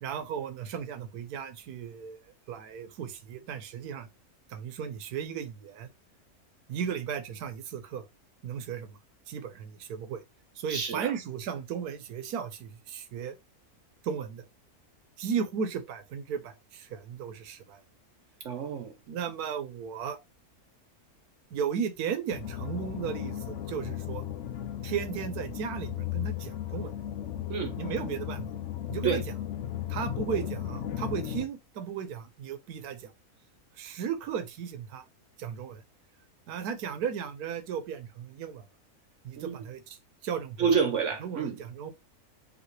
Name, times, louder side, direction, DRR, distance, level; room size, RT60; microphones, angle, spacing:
voice 1, 0.0-2.2 2.5-4.1 4.5-5.9 6.7-8.0 8.4-9.0 9.3-10.2 10.6-13.3 14.0-14.4 15.2-17.8 19.1-20.2 21.5-24.2 24.8-26.9 27.8-28.5 28.9-29.2 29.9-33.1 33.8-35.0 35.4-35.8 36.5-38.6 39.2-40.0 40.2-40.6 41.2-41.9, right 7 dB, 80° right, 1.3 m, -35 dB
voice 2, 10.7-11.1 18.4-18.9 27.5-27.7 29.0-29.2 39.4-39.7 40.6-41.6, right 6 dB, 60° right, 1.0 m, -28 dB
sound 1, 22.3-31.5, left 11 dB, 65° left, 0.9 m, -35 dB
5.1 x 2.8 x 3.1 m
omnidirectional pair, 1.6 m